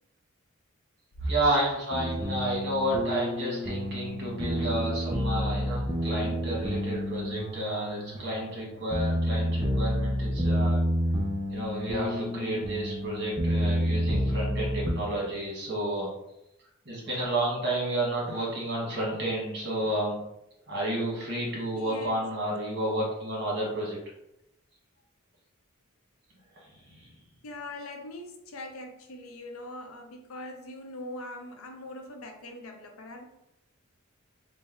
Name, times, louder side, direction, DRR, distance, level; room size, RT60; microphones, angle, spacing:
voice 1, 1.2-10.9 11.5-16.1 16.8-20.2 20.7-24.0 26.9-27.1, right 1 dB, 55° right, -4 dB, 1.3 m, -31 dB
sound 1, 1.9-14.9, equal, 20° right, 0.4 m, -29 dB
voice 2, 21.7-22.2 27.4-33.2, left 1 dB, 85° left, 4 dB, 0.6 m, -42 dB
3.2 x 2.0 x 3.5 m, 0.85 s
head